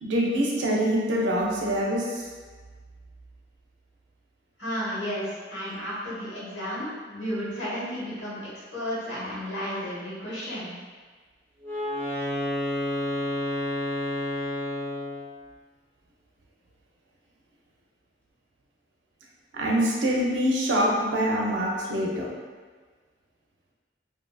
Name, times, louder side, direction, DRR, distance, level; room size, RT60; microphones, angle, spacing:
voice 1, 0.0-2.2 19.5-22.3, equal, 90° right, -2 dB, 0.5 m, -25 dB
voice 2, 4.6-8.4 8.7-10.7, equal, 80° left, -9 dB, 1.1 m, -32 dB
Wind instrument woodwind instrument, 11.6-15.3, left 1 dB, 10° left, 0.6 m, -30 dB
2.6 x 2.4 x 2.2 m, 1.5 s
head